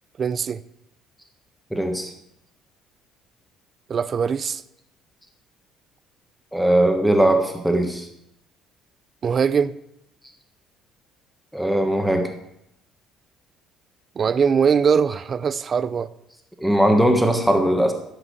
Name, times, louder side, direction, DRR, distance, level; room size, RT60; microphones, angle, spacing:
voice 1, 0.2-0.6 3.9-4.6 9.2-9.7 14.2-16.1, right 6 dB, 35° right, 0.5 m, -21 dB
voice 2, 1.7-2.1 6.5-8.1 11.5-12.3 16.6-17.9, right 1 dB, ahead, 1.4 m, -19 dB
15.5 x 6.1 x 7.9 m
cardioid pair, 130°, 0 cm